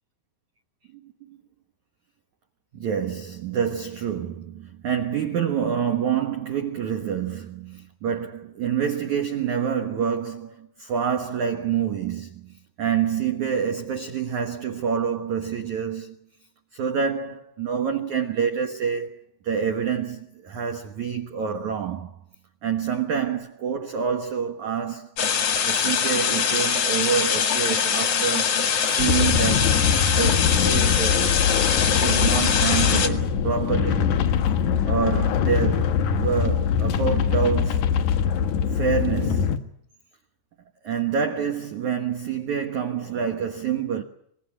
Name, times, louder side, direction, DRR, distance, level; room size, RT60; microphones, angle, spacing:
voice 1, 0.9-1.4 2.7-16.2 16.7-19.2 19.4-22.2 22.6-25.1 25.7-28.6 28.8-31.5 32.0-34.1 34.9-37.9 38.7-39.7 40.8-44.0, right 7 dB, 70° right, 1.8 m, -27 dB
sound 1, 25.2-33.1, left 7 dB, 55° left, 1.7 m, -23 dB
sound 2, 29.0-39.6, left 7 dB, 90° left, 1.7 m, -23 dB
25.0 x 20.5 x 8.7 m
omnidirectional pair, 5.4 m